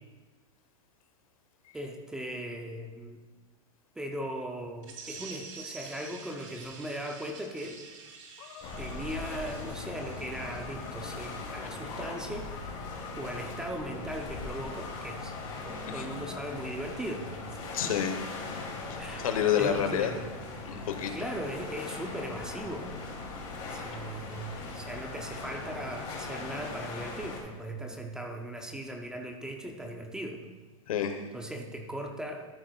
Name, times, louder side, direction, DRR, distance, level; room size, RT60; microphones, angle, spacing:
voice 1, 1.7-3.2 4.0-7.8 8.8-12.8 13.2-15.3 15.6-17.3 19.0-20.3 21.1-22.9 23.7-30.4 31.3-32.5, right 1 dB, 5° right, 3 dB, 0.4 m, -38 dB
sound 1, 4.8-11.2, right 5 dB, 65° right, 1.8 m, -48 dB
sound 2, 8.4-16.5, left 7 dB, 65° left, 1.2 m, -48 dB
sound 3, 8.6-27.4, left 3 dB, 35° left, 2.4 m, -40 dB
voice 2, 15.9-16.2 17.7-18.2 18.9-20.1 20.6-21.1 23.9-24.0 30.9-31.2, left 9 dB, 90° left, 7 dB, 1.1 m, -29 dB
13.0 x 8.6 x 2.3 m, 1.3 s
supercardioid pair, 165°, 18 cm